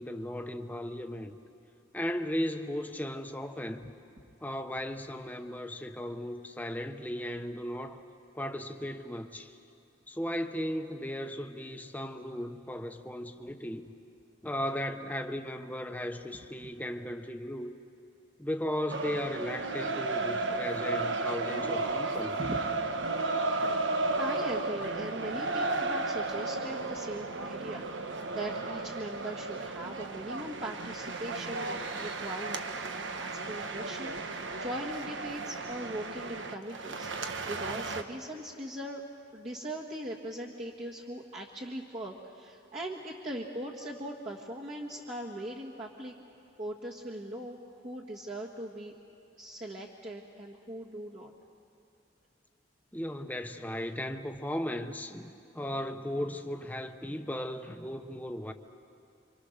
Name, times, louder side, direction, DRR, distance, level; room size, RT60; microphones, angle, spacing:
voice 1, 0.0-1.4 1.9-3.9 4.4-8.0 8.3-9.6 10.1-13.9 14.4-17.8 18.4-22.4 52.9-58.5, equal, 10° left, 6 dB, 1.0 m, -36 dB
sound 1, 18.9-38.0, right 3 dB, 90° right, 1.2 m, -34 dB
voice 2, 24.1-37.1 37.5-39.0 39.3-46.1 46.6-47.6 47.8-48.9 49.4-51.3, right 1 dB, 40° right, -4 dB, 1.7 m, -40 dB
29.0 x 25.0 x 6.7 m, 2.6 s
head